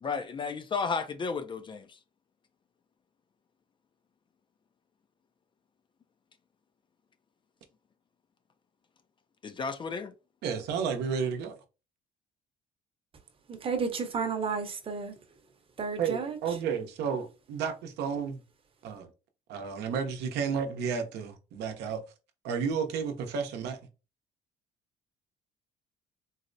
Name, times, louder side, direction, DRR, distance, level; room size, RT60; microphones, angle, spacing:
voice 1, 0.0-1.9 9.4-10.1, left 5 dB, 30° left, 0.3 m, -33 dB
voice 2, 10.4-11.5 16.0-18.4 18.8-19.1 19.5-22.0 22.4-23.8, right 6 dB, 80° right, 0.7 m, -32 dB
voice 3, 13.5-15.2 15.8-16.6, right 5 dB, 30° right, 0.7 m, -32 dB
4.0 x 2.0 x 2.5 m
cardioid pair, 110°, 17 cm